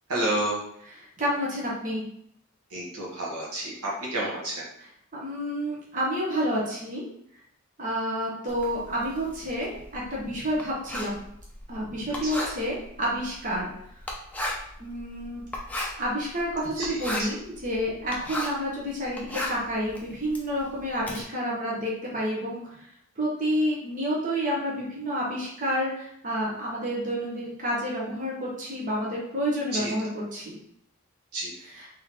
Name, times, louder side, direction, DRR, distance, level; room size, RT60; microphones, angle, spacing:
voice 1, 0.1-0.6 2.7-4.6 12.2-12.5 16.8-17.3 29.7-29.9 31.3-31.5, right 1 dB, 85° right, -4 dB, 1.3 m, -30 dB
voice 2, 1.2-2.0 5.1-7.1 7.8-11.3 11.7-13.7 14.8-15.4 16.0-22.8 23.2-30.6 31.8-31.9, equal, 35° right, -5 dB, 1.0 m, -29 dB
Writing, 8.5-18.7 19.0-21.2, left 1 dB, 5° left, 0.5 m, -36 dB
3.7 x 3.6 x 2.9 m, 0.71 s
head